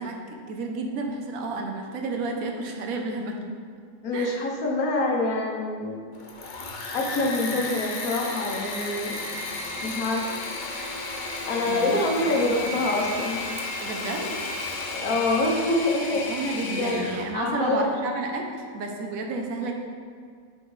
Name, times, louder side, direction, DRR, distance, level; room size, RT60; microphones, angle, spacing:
voice 1, 0.0-3.4 4.1-4.4 11.6-12.0 12.3-12.6 13.8-14.4 16.3-19.7, right 3 dB, 80° right, 2 dB, 1.2 m, -31 dB
voice 2, 4.0-6.0 6.9-9.1 9.8-10.2 11.5-13.4 14.9-16.2 16.7-17.9, left 2 dB, 90° left, 0 dB, 1.4 m, -26 dB
Engine / Mechanisms, 6.1-17.3, left 2 dB, 45° left, 0.7 m, -33 dB
8.6 x 4.4 x 3.2 m, 2.1 s
omnidirectional pair, 1.4 m